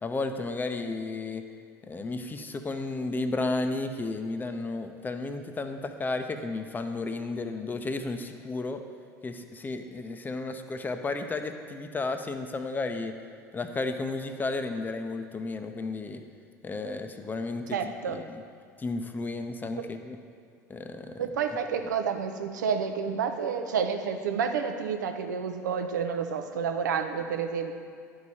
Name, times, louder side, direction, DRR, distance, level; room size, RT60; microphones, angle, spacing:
voice 1, 0.0-1.4 1.9-8.8 9.2-13.1 13.5-16.2 16.6-17.8 18.1-18.4 18.8-20.2 20.7-21.2, left 3 dB, 20° left, 7 dB, 0.6 m, -33 dB
voice 2, 17.7-18.2 21.2-27.7, right 6 dB, 80° right, 6 dB, 0.6 m, -29 dB
11.5 x 4.8 x 2.8 m, 2.3 s
hypercardioid pair, 75°, 10 cm